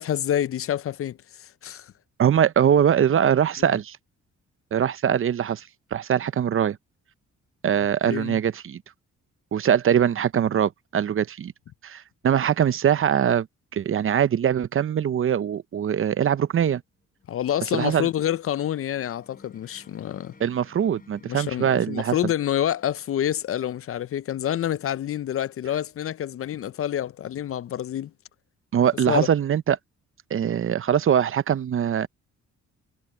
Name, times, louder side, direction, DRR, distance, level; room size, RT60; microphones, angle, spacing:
voice 1, 0.0-1.9 8.1-8.4 17.3-20.3 21.3-28.1 29.1-29.3, left 11 dB, 50° left, 0.5 m, -27 dB
voice 2, 2.2-4.0 4.7-6.8 7.6-8.8 9.5-11.5 11.8-13.5 13.7-16.8 17.7-18.1 20.4-22.2 28.7-29.8 30.3-32.1, right 9 dB, 45° right, 0.7 m, -22 dB
sound 1, 16.8-24.6, left 4 dB, 30° left, 4.7 m, -56 dB
cardioid pair, 90°, 30 cm